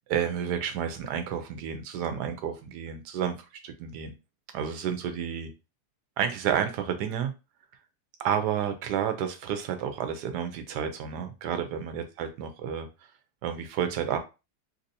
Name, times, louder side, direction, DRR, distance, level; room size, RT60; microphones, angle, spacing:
voice 1, 0.1-3.4 3.6-4.1 4.5-5.5 6.2-7.3 8.2-12.9 13.4-14.2, right 8 dB, 75° right, 1.2 m, -30 dB
3.3 x 2.8 x 2.6 m
omnidirectional pair, 1.8 m